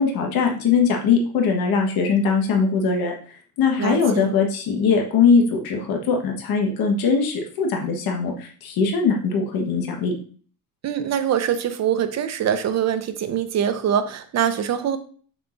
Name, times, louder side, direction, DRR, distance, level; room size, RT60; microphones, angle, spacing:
voice 1, 0.0-3.1 3.6-10.1, left 5 dB, 80° left, 1.5 m, -21 dB
voice 2, 3.8-4.3 10.8-15.0, right 9 dB, 50° right, 0.8 m, -23 dB
6.8 x 6.1 x 2.6 m
cardioid pair, 155°, 35 cm